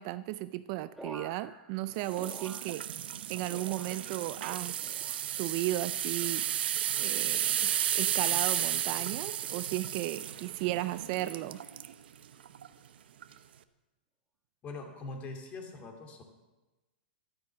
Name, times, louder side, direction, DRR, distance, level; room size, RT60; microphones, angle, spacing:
voice 1, 0.0-2.8 3.3-5.0 5.3-6.5 7.0-11.6, right 16 dB, 40° right, 15 dB, 0.4 m, -35 dB
sound 1, 1.0-3.2 3.5-4.3 4.8-5.5 6.1-6.6 7.5-7.9 8.8-9.1, right 1 dB, ahead, 1.4 m, -51 dB
sound 2, 2.0-11.9 12.4-12.7 13.2-13.3, right 10 dB, 70° right, 0.8 m, -33 dB
voice 2, 14.6-16.2, left 3 dB, 25° left, 3 dB, 2.5 m, -42 dB
12.5 x 9.5 x 7.2 m, 1.1 s
hypercardioid pair, 145°, 6 cm